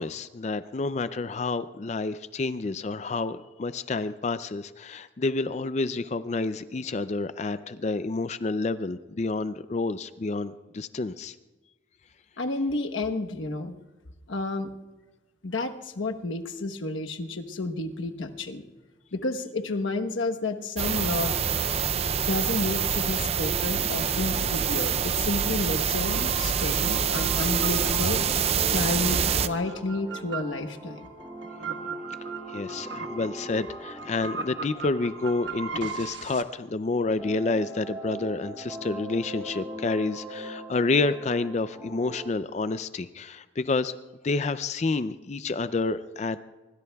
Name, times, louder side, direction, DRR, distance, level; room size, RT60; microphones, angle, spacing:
voice 1, 0.0-11.4 32.5-43.9 44.2-46.4, left 3 dB, 35° left, 12 dB, 0.4 m, -29 dB
voice 2, 12.4-13.7 14.3-14.7 15.4-18.6 19.1-21.4 22.2-28.2 28.7-31.1, left 2 dB, 85° left, 5 dB, 1.1 m, -31 dB
sound 1, 20.8-29.5, right 7 dB, 30° right, 0.4 m, -26 dB
sound 2, 23.4-36.7 37.2-42.3, equal, 10° right, 3.3 m, -41 dB
sound 3, 25.6-36.4, right 4 dB, 70° right, 1.3 m, -39 dB
25.0 x 23.5 x 2.3 m, 1.3 s
head